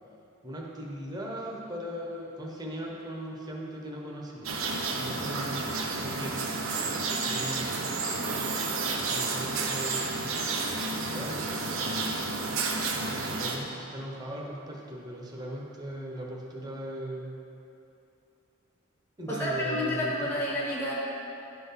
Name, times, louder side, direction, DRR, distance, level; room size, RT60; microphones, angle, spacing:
voice 1, 0.4-4.6 5.0-7.9 9.1-10.2 11.0-12.2 12.8-17.4 19.2-20.3, right 1 dB, 20° right, -3 dB, 1.0 m, -39 dB
sound 1, 4.4-13.6, right 3 dB, 85° right, 0.8 m, -31 dB
voice 2, 19.3-20.9, left 1 dB, 10° left, -8 dB, 1.1 m, -30 dB
10.5 x 3.9 x 5.7 m, 2.8 s
head